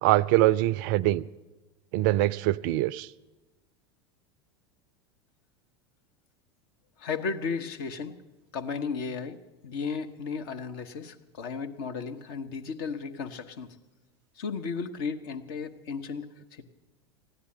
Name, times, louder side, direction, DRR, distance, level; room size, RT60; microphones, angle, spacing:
voice 1, 0.0-1.2 1.9-3.1, right 16 dB, 50° right, 0.4 m, -23 dB
voice 2, 7.0-8.1 8.5-9.4 9.6-13.7 14.4-16.6, left 5 dB, 55° left, 1.0 m, -34 dB
15.0 x 9.8 x 7.7 m
figure-of-eight pair, 80°, 14 cm